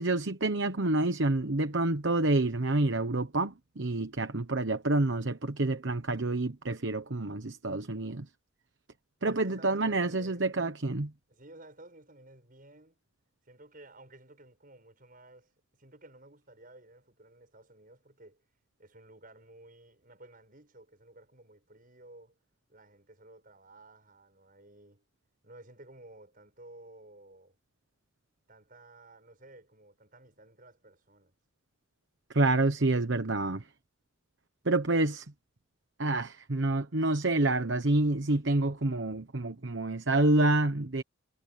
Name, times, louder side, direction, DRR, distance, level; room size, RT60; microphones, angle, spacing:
voice 1, 0.0-8.3 9.2-11.1 32.3-33.6 34.6-35.2 36.0-41.0, right 2 dB, 65° right, 1.1 m, -28 dB
voice 2, 9.2-10.6 11.3-13.0 13.5-18.4 18.8-22.4 22.7-25.0 25.4-27.6 28.5-31.4, right 2 dB, 45° right, 7.3 m, -54 dB
head